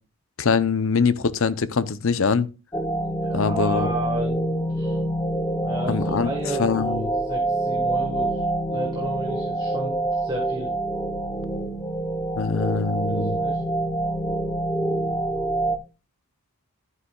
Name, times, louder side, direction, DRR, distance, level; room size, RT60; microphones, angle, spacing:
voice 1, 0.4-2.5 3.3-3.9 5.9-6.3 6.6-7.1 12.4-13.4, left 5 dB, 60° left, 0.6 m, -23 dB
sound 1, 2.7-15.8, right 1 dB, 15° left, 0.8 m, -26 dB
voice 2, 2.9-5.0 5.6-10.7 13.1-13.6, right 1 dB, 20° right, 1.6 m, -33 dB
11.5 x 9.6 x 2.3 m
head